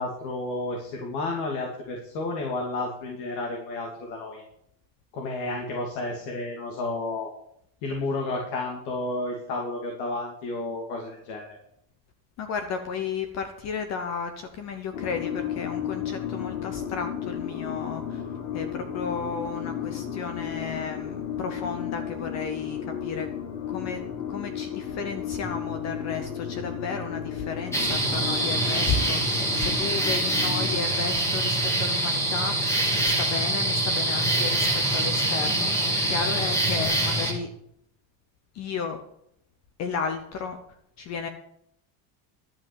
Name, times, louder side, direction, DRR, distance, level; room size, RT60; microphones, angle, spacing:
voice 1, 0.0-4.4 5.1-7.3 7.8-11.6, left 2 dB, 85° left, 0 dB, 2.8 m, -31 dB
voice 2, 12.4-18.2 18.5-23.3 23.7-24.0 24.3-37.5 38.5-39.0 39.8-40.6 41.0-41.3, left 5 dB, 35° left, 7 dB, 0.9 m, -33 dB
sound 1, 14.9-30.8, left 9 dB, 70° left, 2.2 m, -34 dB
sound 2, 25.4-36.9, left 2 dB, 10° right, 1.4 m, -42 dB
sound 3, 27.7-37.3, right 1 dB, 5° left, 2.0 m, -25 dB
12.0 x 5.7 x 8.8 m, 0.73 s
cardioid pair, 180°, 48 cm